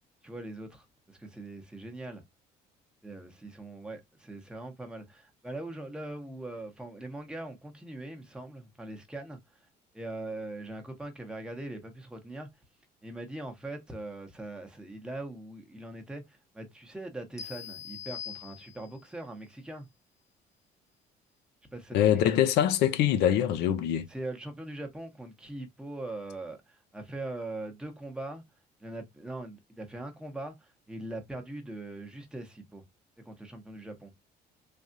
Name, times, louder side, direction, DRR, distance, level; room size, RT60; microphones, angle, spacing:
voice 1, 0.2-2.2 3.0-9.4 9.9-12.5 13.0-19.9 21.7-22.5 24.1-28.4 28.8-32.8 33.2-34.1, right 2 dB, 5° right, 0.9 m, -41 dB
sound 1, 17.4-19.1, left 8 dB, 20° left, 0.5 m, -43 dB
voice 2, 21.9-24.1, left 10 dB, 85° left, 0.5 m, -24 dB
3.3 x 2.4 x 2.6 m
cardioid pair, 110°, 17 cm